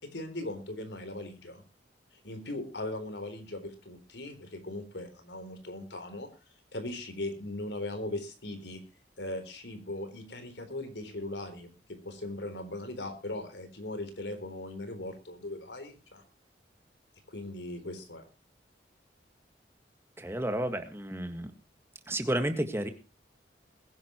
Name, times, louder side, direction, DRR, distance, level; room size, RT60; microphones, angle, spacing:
voice 1, 0.0-1.6 2.2-6.3 6.7-8.8 9.2-16.2 17.3-18.2, left 1 dB, 90° left, 8 dB, 3.8 m, -39 dB
voice 2, 20.2-21.5 22.1-22.9, right 1 dB, 15° right, 7 dB, 1.8 m, -31 dB
21.5 x 11.0 x 3.1 m, 0.31 s
head